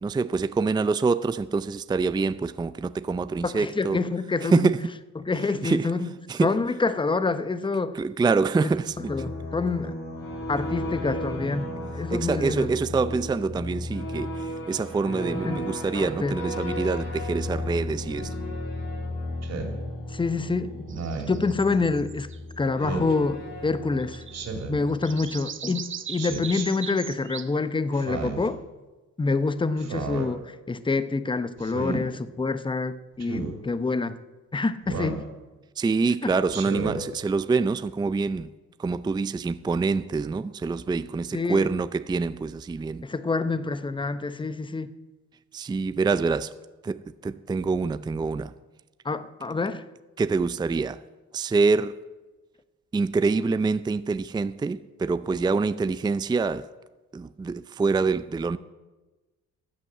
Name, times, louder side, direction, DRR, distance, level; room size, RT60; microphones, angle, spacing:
voice 1, 0.0-4.0 4.4-4.8 5.6-5.9 6.3-6.5 7.9-9.1 12.1-18.3 35.8-38.5 38.8-43.0 45.5-46.5 46.8-48.5 50.2-51.0 51.3-51.9 52.9-56.7 57.1-58.6, right 4 dB, 15° right, 0.4 m, -26 dB
voice 2, 3.4-4.7 5.2-6.1 6.4-8.0 9.0-9.9 10.5-12.7 15.4-15.7 15.9-16.4 20.1-20.9 21.3-22.3 22.6-24.2 24.7-28.6 29.2-34.2 34.5-35.2 41.3-41.7 43.0-44.9 49.0-49.9, left 3 dB, 15° left, 0.8 m, -27 dB
sound 1, 8.7-25.3, left 1 dB, 75° left, 5.8 m, -35 dB
Speech synthesizer, 19.4-19.8 20.9-21.4 22.8-23.1 24.3-24.8 26.2-26.7 27.9-28.5 29.8-30.3 31.6-32.0 33.2-33.5 34.9-35.3 36.5-37.0, right 4 dB, 60° right, 2.8 m, -32 dB
sound 2, 20.9-22.5 24.0-24.6 24.9-27.5, right 8 dB, 40° right, 1.0 m, -39 dB
13.5 x 8.3 x 7.5 m
cardioid pair, 90°, 30 cm